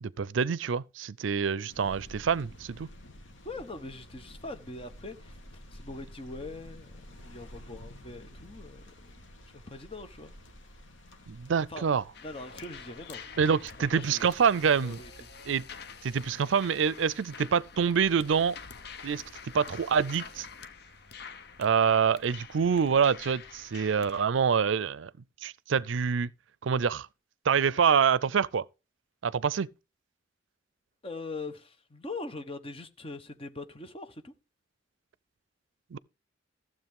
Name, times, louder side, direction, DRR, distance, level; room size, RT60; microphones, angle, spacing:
voice 1, 0.0-2.9 11.3-12.0 13.4-15.0 15.5-15.6 16.0-18.6 19.0-19.2 19.5-20.5 21.6-25.1 25.4-26.3 26.6-27.1 27.5-28.6 29.2-29.7 35.9-36.0, right 6 dB, 75° right, 0.5 m, -26 dB
sound 1, 1.7-15.1, equal, 75° left, 1.9 m, -51 dB
voice 2, 3.4-5.4 5.7-7.0 7.2-9.2 9.5-10.3 11.7-11.9 12.2-13.3 13.9-14.3 14.8-15.3 31.0-34.3, left 2 dB, 30° left, 1.1 m, -42 dB
sound 2, 12.1-24.3, left 5 dB, 55° left, 0.9 m, -47 dB
14.5 x 7.5 x 3.7 m
head